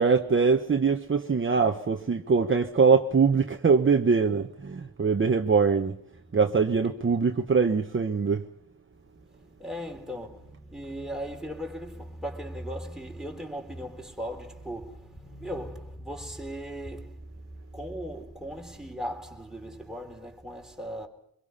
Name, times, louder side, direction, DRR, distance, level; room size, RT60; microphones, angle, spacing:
voice 1, 0.0-6.0 6.3-8.5, right 5 dB, 35° right, 1.1 m, -23 dB
voice 2, 9.0-21.1, equal, ahead, 3.9 m, -38 dB
25.0 x 22.0 x 5.6 m
wide cardioid pair, 105°, 35 cm